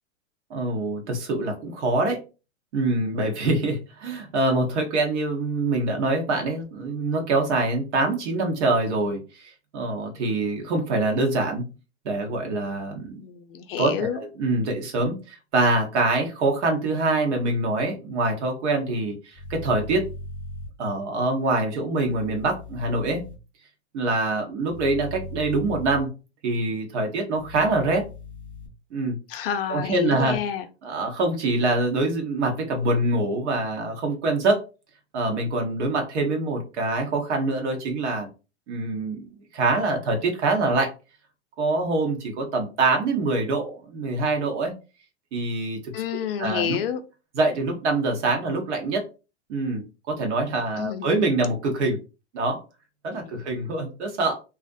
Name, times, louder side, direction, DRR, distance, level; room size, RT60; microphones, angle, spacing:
voice 1, 0.5-2.2 2.7-11.6 12.0-13.2 13.8-20.1 20.8-23.2 23.9-26.1 26.4-28.0 28.9-29.2 29.7-30.4 30.8-34.6 35.1-38.3 38.7-40.9 41.6-44.7 45.3-45.9 46.4-46.8 47.3-49.1 49.5-52.0 52.3-52.6 53.0-54.3, right 2 dB, 75° right, 1.0 m, -25 dB
voice 2, 13.2-14.2 29.3-30.7 45.9-47.0 50.8-51.2 53.1-53.4, left 9 dB, 55° left, 0.5 m, -29 dB
sound 1, 19.3-20.7 22.0-23.3 24.7-26.0 27.3-28.7, left 2 dB, 5° left, 0.9 m, -38 dB
2.5 x 2.1 x 2.5 m
hypercardioid pair, 135°, 35 cm